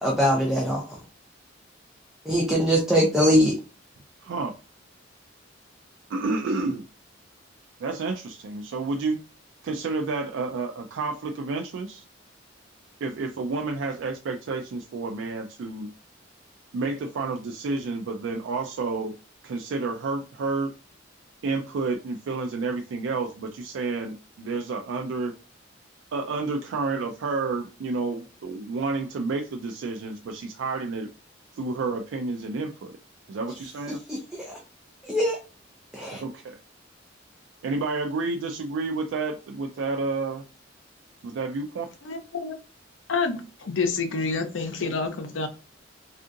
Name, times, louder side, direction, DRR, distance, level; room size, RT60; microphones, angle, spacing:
voice 1, 0.0-0.8 2.3-3.6 34.1-34.6 35.0-35.4 35.9-36.2, equal, ahead, -2 dB, 0.5 m, -22 dB
voice 2, 4.2-4.5 6.1-6.8 7.8-9.2 9.6-12.0 13.0-15.9 16.7-19.1 19.4-20.7 21.4-25.3 26.1-31.1 31.5-33.0 33.3-34.0 36.1-36.6 37.6-40.4 41.2-41.9, right 3 dB, 75° right, 3 dB, 0.3 m, -30 dB
voice 3, 42.0-42.5 43.1-45.5, left 4 dB, 80° left, 7 dB, 0.6 m, -28 dB
3.5 x 2.4 x 2.5 m, 0.32 s
head